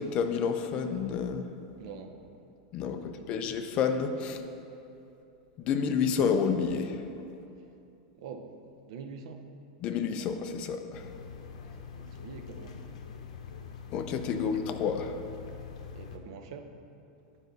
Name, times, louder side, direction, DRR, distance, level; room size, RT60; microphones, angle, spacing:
voice 1, 0.0-1.4 2.7-4.4 5.6-7.1 9.8-11.1 13.9-15.2, left 6 dB, 30° left, 7 dB, 0.4 m, -30 dB
voice 2, 1.8-2.5 2.9-3.5 7.6-7.7 8.1-8.6 8.8-9.5 11.6-13.0 14.3-14.7 15.9-16.7, right 5 dB, 55° right, 6 dB, 0.6 m, -45 dB
sound 1, 10.9-16.2, left 6 dB, 85° left, 0.7 m, -44 dB
9.8 x 5.1 x 4.0 m, 2.8 s
supercardioid pair, 170°, 4 cm